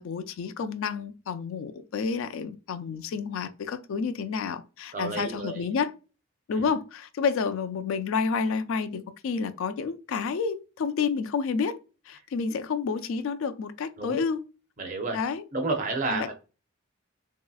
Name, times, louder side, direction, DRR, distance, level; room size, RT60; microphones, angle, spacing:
voice 1, 0.0-5.9 6.5-11.8 12.1-14.4 15.1-15.5 16.1-16.3, left 5 dB, 70° left, 0.3 m, -30 dB
voice 2, 4.9-5.6 6.5-6.7 14.0-14.2 14.8-15.2 15.5-16.3, right 3 dB, 35° right, 0.5 m, -30 dB
3.0 x 2.7 x 2.3 m
head